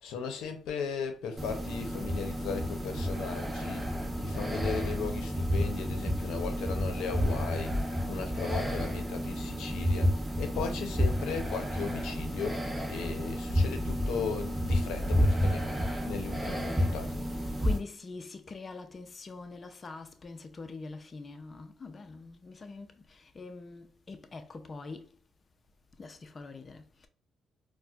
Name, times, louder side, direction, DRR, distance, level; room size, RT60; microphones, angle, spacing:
voice 1, 0.0-3.8 4.2-15.7 16.0-17.2, left 5 dB, 85° left, 0.7 m, -37 dB
sound 1, 1.4-17.8, equal, 15° right, 0.9 m, -31 dB
voice 2, 16.5-17.0 17.6-25.1 26.0-27.1, left 3 dB, 35° left, 0.5 m, -44 dB
4.2 x 2.2 x 2.4 m
cardioid pair, 90°, 0 cm